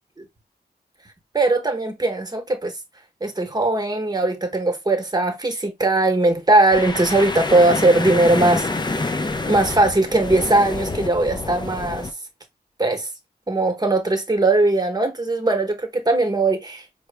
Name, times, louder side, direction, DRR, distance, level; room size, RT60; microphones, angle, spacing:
voice 1, 1.3-2.7 3.2-9.1 9.5-12.1 12.8-13.1 13.5-16.8, right 2 dB, 25° right, 1.0 m, -19 dB
sound 1, 6.7-12.1, left 2 dB, 25° left, 0.5 m, -27 dB
4.5 x 2.1 x 3.4 m
wide cardioid pair, 70°, 17 cm